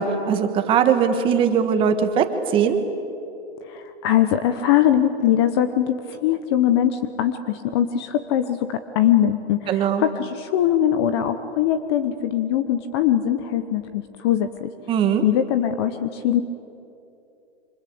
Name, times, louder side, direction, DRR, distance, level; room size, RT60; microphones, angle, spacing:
voice 1, 0.0-2.2 2.5-2.8 9.7-10.0 14.9-15.2, right 7 dB, 15° right, 8 dB, 1.4 m, -20 dB
voice 2, 3.6-14.7 15.2-16.4, left 10 dB, 25° left, 10 dB, 0.8 m, -21 dB
26.5 x 26.0 x 8.6 m, 2.7 s
hypercardioid pair, 155°, 34 cm